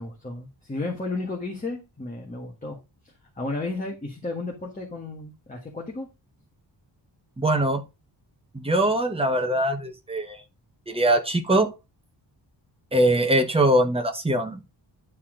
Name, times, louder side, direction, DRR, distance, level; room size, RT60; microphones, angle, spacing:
voice 1, 0.0-2.8 3.0-6.1, left 2 dB, 20° left, 1.6 m, -33 dB
voice 2, 7.4-7.8 8.5-10.4 10.9-11.7 12.9-14.6, right 1 dB, 15° right, 1.1 m, -22 dB
10.5 x 4.3 x 3.8 m
wide cardioid pair, 180°, 44 cm